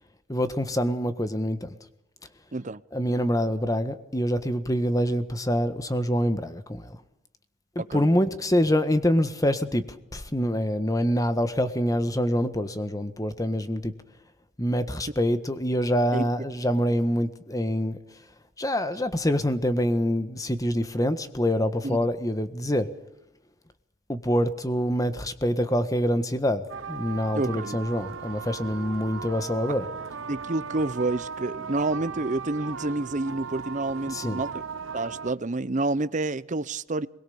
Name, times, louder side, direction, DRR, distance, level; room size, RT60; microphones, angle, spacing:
voice 1, 0.3-1.8 2.9-7.0 7.9-9.8 10.1-13.9 14.6-18.0 18.6-22.9 24.1-29.9 34.1-34.4, equal, 15° left, 1.5 m, -25 dB
voice 2, 7.8-8.1 16.1-16.3 21.8-22.0 27.3-27.8 30.3-34.6 34.9-37.1, right 2 dB, 40° right, 0.8 m, -29 dB
sound 1, 26.7-35.3, right 6 dB, 75° right, 1.0 m, -37 dB
23.0 x 21.5 x 7.1 m
head